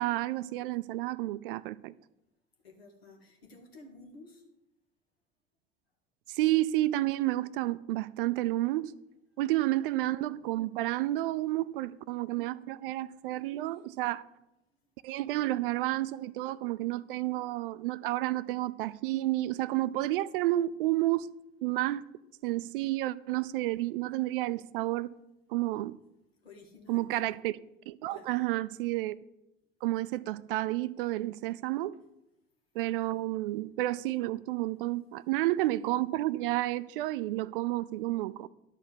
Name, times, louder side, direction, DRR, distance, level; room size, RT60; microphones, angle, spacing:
voice 1, 0.0-1.9 6.3-8.9 9.4-14.2 15.0-21.3 21.6-22.0 22.4-25.1 25.5-26.0 26.9-27.5 27.9-29.2 29.8-31.9 32.8-38.5, right 16 dB, 60° right, 0.5 m, -30 dB
voice 2, 2.6-4.5 9.3-9.4 12.2-12.7 13.2-13.3 13.6-13.9 14.8-14.9 26.4-27.1 28.1-28.6, left 3 dB, 80° left, 1.6 m, -54 dB
11.5 x 4.2 x 7.0 m
figure-of-eight pair, 65°, 30 cm